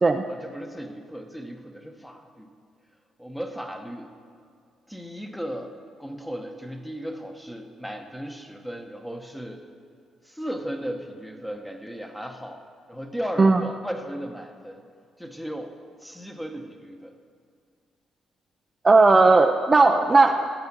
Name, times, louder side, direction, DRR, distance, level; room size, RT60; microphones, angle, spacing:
voice 1, 0.3-2.5 3.2-4.1 4.9-5.7 6.0-9.7 10.2-14.8 15.2-17.2, equal, 5° left, 5 dB, 1.0 m, -36 dB
voice 2, 18.8-20.5, right 3 dB, 25° right, 5 dB, 0.5 m, -16 dB
13.5 x 8.6 x 6.0 m, 2.2 s
cardioid pair, 110°, 0 cm